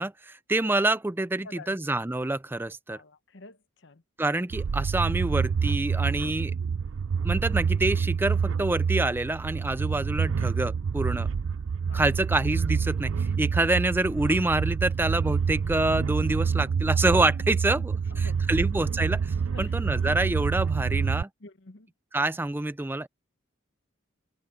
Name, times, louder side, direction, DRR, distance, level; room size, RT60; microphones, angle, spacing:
voice 1, 0.0-3.0 4.2-6.5 7.2-11.3 11.9-21.3 22.1-23.1, right 2 dB, 10° right, 0.4 m, -27 dB
voice 2, 1.4-1.8 2.9-4.0 11.9-12.0 18.1-18.7 19.5-19.9 21.4-21.9, left 3 dB, 60° left, 1.0 m, -48 dB
sound 1, 4.5-21.2, right 6 dB, 75° right, 0.4 m, -27 dB
head